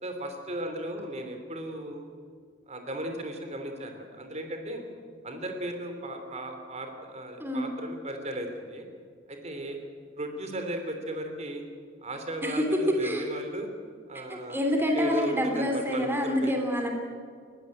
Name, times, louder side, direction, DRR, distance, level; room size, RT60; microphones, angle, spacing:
voice 1, 0.0-2.1 2.7-4.8 5.2-8.8 9.3-9.8 10.2-11.6 12.0-13.7 14.1-16.5, right 1 dB, 35° right, 5 dB, 3.0 m, -36 dB
voice 2, 12.4-13.3 14.3-16.9, equal, 10° right, 3 dB, 2.9 m, -27 dB
20.5 x 16.0 x 8.7 m, 2.1 s
head